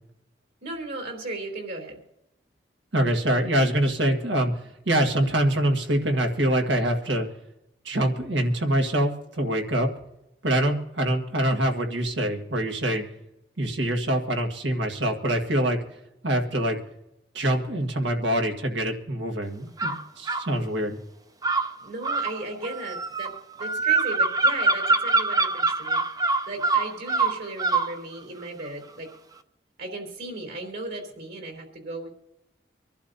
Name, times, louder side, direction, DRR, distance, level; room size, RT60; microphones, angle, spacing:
voice 1, 0.6-2.0 21.8-26.0 26.5-29.1 29.8-32.1, right 2 dB, 60° right, 2 dB, 3.9 m, -36 dB
voice 2, 2.9-7.2 7.8-9.9 10.4-13.0 13.6-15.8 16.2-16.8 17.3-21.0, right 1 dB, 85° right, 4 dB, 1.8 m, -25 dB
sound 1, 19.8-20.5 21.4-27.9, right 3 dB, 20° right, 0.5 m, -24 dB
25.5 x 11.5 x 2.7 m, 0.86 s
head